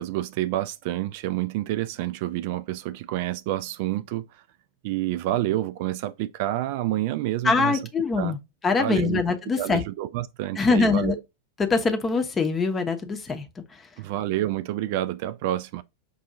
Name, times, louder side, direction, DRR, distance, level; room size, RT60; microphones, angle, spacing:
voice 1, 0.0-4.4 4.8-7.8 8.2-8.4 8.8-9.2 9.6-11.2 14.0-15.8, right 14 dB, 50° right, 0.3 m, -28 dB
voice 2, 7.4-8.4 8.6-9.8 10.6-11.1 11.6-13.8, left 4 dB, 20° left, 0.8 m, -23 dB
5.4 x 2.6 x 2.5 m
figure-of-eight pair, 90°, 0 cm